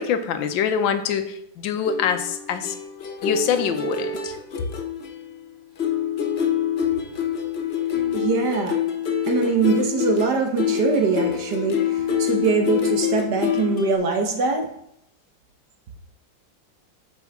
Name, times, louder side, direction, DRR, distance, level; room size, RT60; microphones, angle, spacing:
voice 1, 0.0-2.7 3.2-4.4, left 7 dB, 80° left, 8 dB, 1.4 m, -24 dB
sound 1, 1.9-5.5 5.8-14.0, left 8 dB, 55° left, 0.7 m, -26 dB
voice 2, 8.1-8.8 9.3-14.7, right 4 dB, 65° right, 3 dB, 1.6 m, -23 dB
8.1 x 6.1 x 3.6 m, 0.75 s
omnidirectional pair, 2.0 m